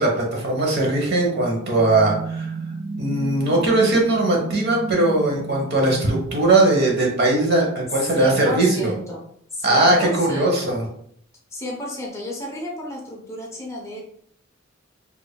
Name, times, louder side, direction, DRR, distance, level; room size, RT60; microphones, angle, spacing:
voice 1, 0.0-2.5 3.0-8.9 9.6-10.8, right 2 dB, 55° right, 0 dB, 1.0 m, -19 dB
sound 1, 1.1-7.4, right 3 dB, 35° right, 0.4 m, -34 dB
voice 2, 8.1-9.2 9.5-10.6 11.5-14.0, left 1 dB, 15° left, -2 dB, 0.7 m, -32 dB
5.0 x 2.7 x 2.2 m, 0.67 s
head